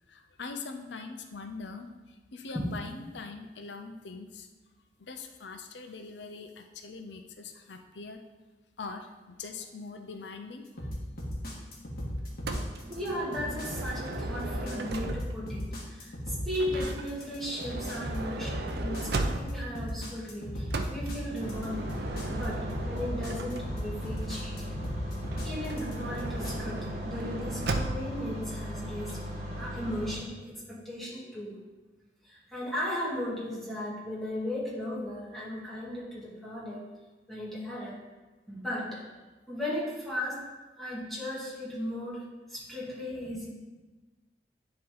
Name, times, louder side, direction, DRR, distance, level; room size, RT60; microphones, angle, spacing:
voice 1, 0.1-4.5 5.0-8.2 8.8-10.9, left 4 dB, 85° left, 6 dB, 0.6 m, -42 dB
sound 1, 10.8-26.5, equal, 60° left, 1.7 m, -37 dB
Motor vehicle (road) / Sliding door, 12.5-15.5 16.5-19.8 20.7-24.0 25.2-28.2, right 2 dB, 65° right, 0.5 m, -37 dB
voice 2, 12.9-21.9 22.3-24.7 25.4-29.2 29.6-31.5 32.2-36.8 37.3-38.0 38.5-39.0 39.5-40.4 40.8-43.5, equal, ahead, -7 dB, 2.0 m, -36 dB
sound 2, 21.4-30.1, equal, 40° right, 1.5 m, -38 dB
10.0 x 3.8 x 3.8 m, 1.2 s
head